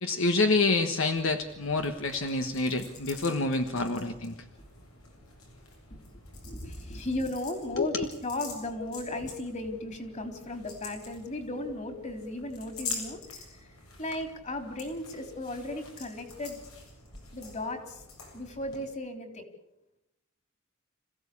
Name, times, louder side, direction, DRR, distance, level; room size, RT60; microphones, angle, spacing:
voice 1, 0.0-4.4 7.8-8.0, left 3 dB, 65° left, 6 dB, 1.3 m, -27 dB
sound 1, 1.1-18.8, left 4 dB, 85° left, 7.5 m, -46 dB
voice 2, 6.4-13.7 14.0-16.6 17.3-18.0 18.3-19.4, left 1 dB, 35° left, 6 dB, 3.5 m, -36 dB
26.5 x 16.0 x 8.5 m, 0.87 s
head